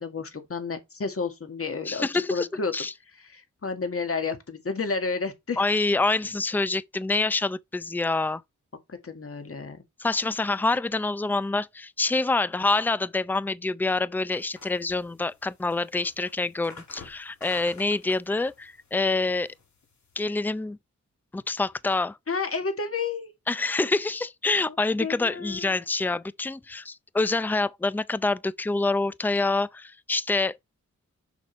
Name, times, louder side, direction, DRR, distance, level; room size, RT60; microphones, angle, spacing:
voice 1, 0.0-2.7 3.2-5.7 8.9-9.8 22.3-23.3 24.7-24.8 25.0-25.7, left 4 dB, 50° left, 2.0 m, -31 dB
voice 2, 1.8-2.5 2.7-2.9 5.6-8.4 10.0-19.5 20.2-20.8 21.3-22.2 23.5-30.6, left 3 dB, 5° left, 0.5 m, -26 dB
sound 1, 14.3-20.3, left 4 dB, 70° left, 2.7 m, -50 dB
7.0 x 6.1 x 4.2 m
cardioid pair, 70°, 30 cm